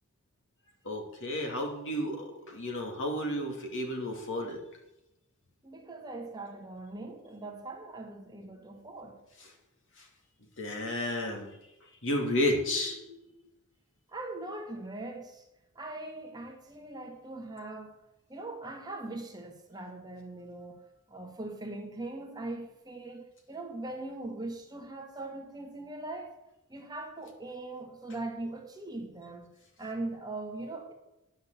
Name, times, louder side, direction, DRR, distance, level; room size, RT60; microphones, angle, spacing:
voice 1, 0.8-4.6 10.6-11.5 12.0-13.2, left 1 dB, 60° left, 2.8 m, -32 dB
voice 2, 5.6-9.2 14.1-15.4 15.7-17.9 18.3-26.4 26.7-29.5 29.8-30.9, right 2 dB, 20° right, 1.4 m, -41 dB
10.0 x 6.6 x 8.2 m
head